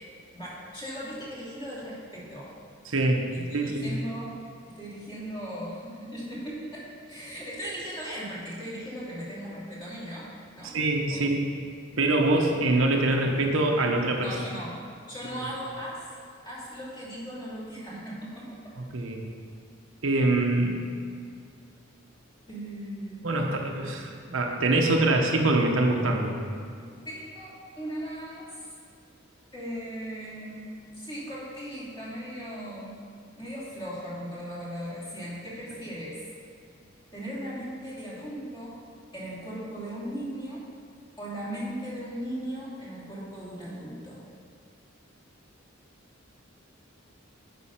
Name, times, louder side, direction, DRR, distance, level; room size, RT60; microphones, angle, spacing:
voice 1, 0.3-2.5 3.3-4.4 4.7-10.3 10.5-10.8 11.1-11.2 14.2-14.8 15.1-16.0 16.4-18.6 22.5-23.6 27.0-28.7 29.5-30.7 30.9-33.0 33.4-36.2 37.1-38.8 39.1-40.7 41.2-44.2, equal, 25° left, -7 dB, 2.6 m, -38 dB
voice 2, 2.8-4.0 10.6-11.5 12.0-14.4 18.8-19.2 20.0-20.8 23.2-26.4, right 2 dB, 75° right, 1 dB, 1.0 m, -24 dB
9.7 x 5.5 x 5.8 m, 2.2 s
head